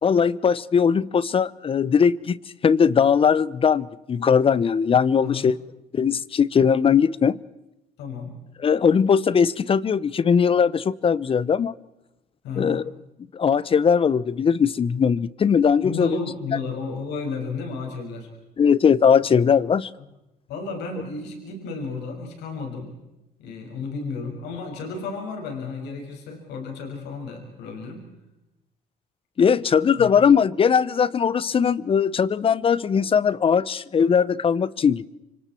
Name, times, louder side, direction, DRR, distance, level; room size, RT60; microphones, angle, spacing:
voice 1, 0.0-2.4 2.6-5.6 5.9-7.4 8.6-11.7 12.6-12.8 13.3-16.2 18.6-19.9 29.4-35.1, left 6 dB, 35° left, 0.8 m, -20 dB
voice 2, 8.0-8.4 12.4-12.8 15.8-18.3 20.5-22.9 23.4-28.1 30.0-30.1, left 4 dB, 85° left, 5.9 m, -33 dB
29.0 x 25.5 x 4.4 m
cardioid pair, 110°, 17 cm